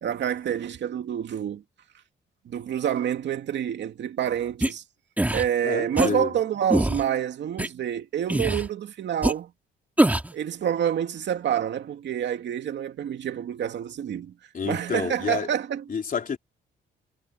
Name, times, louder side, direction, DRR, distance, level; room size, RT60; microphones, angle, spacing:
voice 1, 0.0-1.6 2.5-4.8 5.3-9.5 10.3-14.3 14.6-15.8, right 9 dB, 65° right, 2.4 m, -28 dB
sound 1, 4.6-4.7 5.2-5.4 6.0-6.1 6.7-7.0 7.6-7.7 8.3-8.7 9.2-9.3 10.0-10.3, right 1 dB, 10° right, 2.0 m, -22 dB
voice 2, 5.6-6.3 14.5-15.5 15.9-16.4, left 6 dB, 45° left, 3.6 m, -29 dB
cardioid pair, 90°, 20 cm